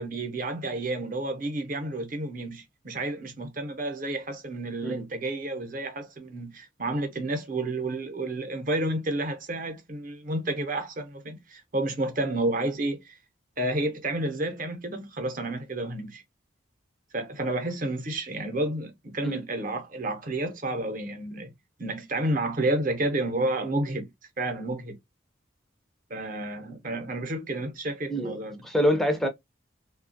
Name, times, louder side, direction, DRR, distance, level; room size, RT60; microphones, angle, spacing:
voice 1, 0.0-13.2 13.6-16.2 17.1-21.5 21.8-24.1 24.4-25.0 26.1-28.6, right 2 dB, 45° right, 0.7 m, -30 dB
voice 2, 28.1-29.3, equal, ahead, 0.4 m, -26 dB
2.8 x 2.2 x 2.5 m
head